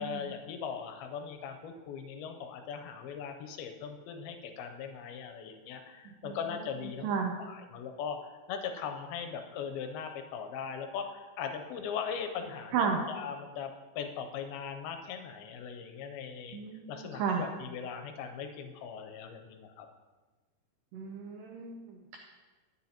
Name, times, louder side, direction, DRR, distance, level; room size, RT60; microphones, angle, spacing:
voice 1, 0.0-7.1 7.4-16.6 16.9-19.9, left 7 dB, 80° left, 6 dB, 2.3 m, -39 dB
voice 2, 7.0-7.3 12.7-13.0 16.5-17.4 20.9-22.2, right 6 dB, 90° right, 2 dB, 1.9 m, -33 dB
10.5 x 9.5 x 2.9 m, 1.3 s
omnidirectional pair, 4.7 m